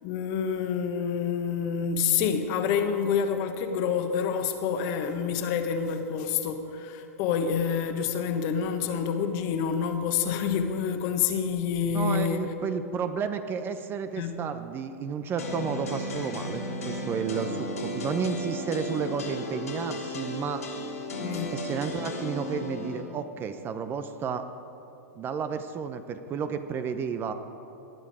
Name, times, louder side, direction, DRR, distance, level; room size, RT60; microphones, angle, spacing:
voice 1, 0.0-12.5 14.2-14.5 21.2-21.6, left 7 dB, 45° left, 7 dB, 1.3 m, -28 dB
voice 2, 11.9-20.7 21.5-24.4 25.2-27.3, right 6 dB, 25° right, 9 dB, 0.8 m, -32 dB
sound 1, 15.4-23.0, left 1 dB, 80° left, 3.2 m, -34 dB
18.5 x 10.5 x 4.9 m, 2.9 s
hypercardioid pair, 105°, 8 cm